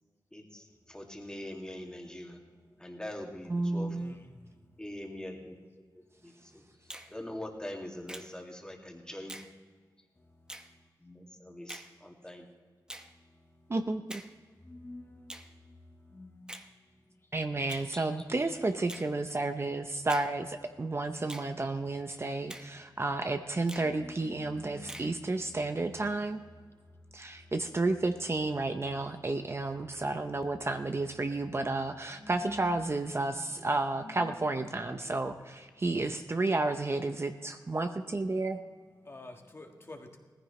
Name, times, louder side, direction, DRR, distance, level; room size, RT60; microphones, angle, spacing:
voice 1, 0.3-2.4 2.8-4.0 4.8-5.6 5.9-6.6 7.1-9.4 11.0-12.5 17.9-18.1, left 1 dB, 10° left, 2.2 m, -43 dB
voice 2, 3.5-4.1 13.7-14.2 17.3-26.4 27.1-38.6, right 2 dB, 35° right, 0.7 m, -32 dB
Finger snapping, 6.9-7.1 8.1-8.3 9.3-9.5 10.5-10.7 11.7-11.9 12.9-13.1 14.1-14.3 15.3-15.5 16.5-16.7 17.7-17.9 18.9-19.1 20.1-20.3 21.3-21.5 22.5-22.7 23.7-23.9 24.9-25.1, right 1 dB, 10° right, 0.9 m, -44 dB
voice 3, 14.7-15.0 16.2-16.3 23.9-25.2 32.2-32.8 33.2-33.4 34.0-34.7 39.1-40.2, left 2 dB, 35° left, 1.5 m, -47 dB
18.0 x 15.0 x 3.2 m
wide cardioid pair, 90°, 8 cm